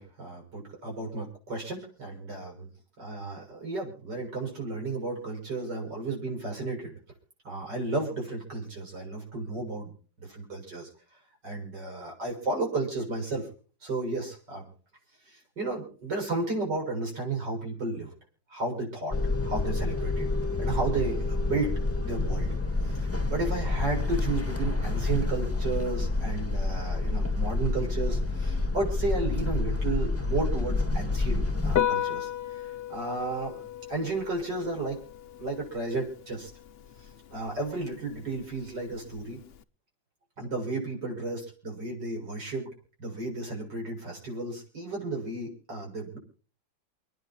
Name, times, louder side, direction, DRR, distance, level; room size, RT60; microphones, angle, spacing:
voice 1, 0.0-2.7 3.0-7.0 7.4-10.9 11.4-13.5 13.8-14.7 15.3-18.1 18.5-19.2 19.4-20.3 20.6-22.5 22.8-33.6 33.9-35.0 35.4-36.5 37.3-39.4 40.4-42.7 43.0-46.2, right 3 dB, 65° right, 0 dB, 7.3 m, -33 dB
sound 1, 19.1-31.8, left 3 dB, 5° left, 1.8 m, -28 dB
Piano, 31.7-39.6, left 10 dB, 75° left, 0.5 m, -35 dB
29.5 x 10.5 x 2.9 m, 0.39 s
omnidirectional pair, 2.1 m